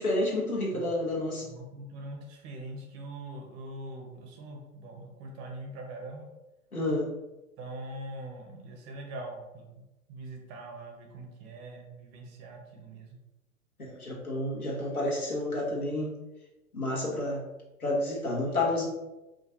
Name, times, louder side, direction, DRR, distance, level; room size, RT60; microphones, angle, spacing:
voice 1, 0.0-1.4 6.7-7.1 13.9-16.1 16.7-17.4 17.8-18.8, left 2 dB, 85° left, -4 dB, 1.3 m, -30 dB
voice 2, 1.4-6.3 7.6-9.8 10.1-13.2 18.5-18.6, right 2 dB, 25° right, 1 dB, 0.7 m, -43 dB
5.1 x 2.4 x 2.7 m, 1.0 s
figure-of-eight pair, 105°, 42 cm